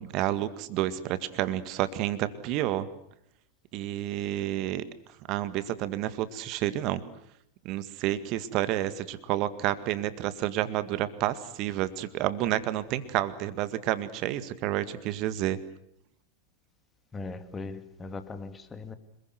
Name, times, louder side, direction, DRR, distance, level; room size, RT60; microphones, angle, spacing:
voice 1, 0.0-2.9 3.7-4.8 5.3-7.0 7.6-15.6, right 13 dB, 40° right, 14 dB, 1.9 m, -30 dB
voice 2, 17.1-18.9, left 3 dB, 15° left, 9 dB, 2.5 m, -39 dB
27.5 x 21.5 x 7.9 m, 0.75 s
figure-of-eight pair, 90°, 0 cm